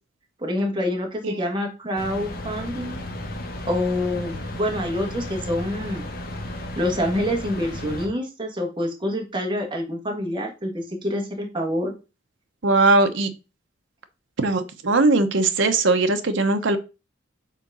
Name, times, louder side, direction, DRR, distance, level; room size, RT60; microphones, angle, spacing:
voice 1, 0.4-3.0 3.7-6.0 6.7-11.9, left 1 dB, 25° right, 1 dB, 1.5 m, -26 dB
sound 1, 2.0-8.1, left 1 dB, 50° left, 1.1 m, -34 dB
voice 2, 12.6-13.3 14.4-16.8, right 3 dB, 65° right, 7 dB, 0.8 m, -19 dB
5.0 x 3.9 x 5.4 m, 0.29 s
head